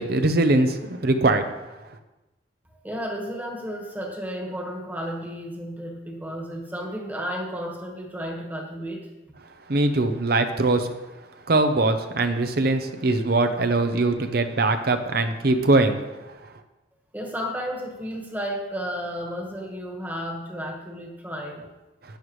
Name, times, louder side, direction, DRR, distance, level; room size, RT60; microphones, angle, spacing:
voice 1, 0.0-1.4 9.7-10.9 11.5-16.0, right 2 dB, 60° right, 8 dB, 0.8 m, -21 dB
voice 2, 2.8-9.1 17.1-21.7, equal, 10° right, 0 dB, 1.6 m, -33 dB
11.5 x 9.1 x 3.2 m, 1.1 s
head